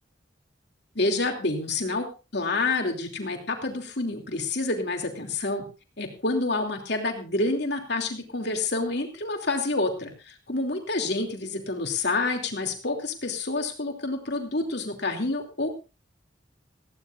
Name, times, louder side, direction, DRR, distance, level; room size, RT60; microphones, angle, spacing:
voice 1, 0.9-5.6 6.0-15.7, left 2 dB, 60° left, 3 dB, 2.9 m, -28 dB
19.0 x 15.5 x 2.6 m, 0.31 s
head